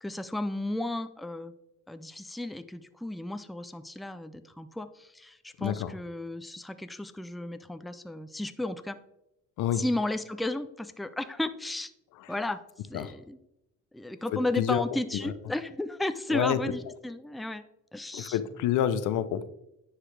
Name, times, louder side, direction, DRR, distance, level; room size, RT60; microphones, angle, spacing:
voice 1, 0.0-1.5 1.9-9.0 9.7-11.9 12.3-12.6 12.9-13.4 13.9-17.6 17.9-18.4, left 1 dB, ahead, 10 dB, 0.4 m, -34 dB
voice 2, 5.6-5.9 9.6-9.8 12.9-13.1 14.3-14.8 15.2-15.3 16.3-16.6 18.1-19.4, left 10 dB, 85° left, 13 dB, 0.6 m, -28 dB
9.7 x 4.9 x 3.3 m, 0.85 s
cardioid pair, 90°, 30 cm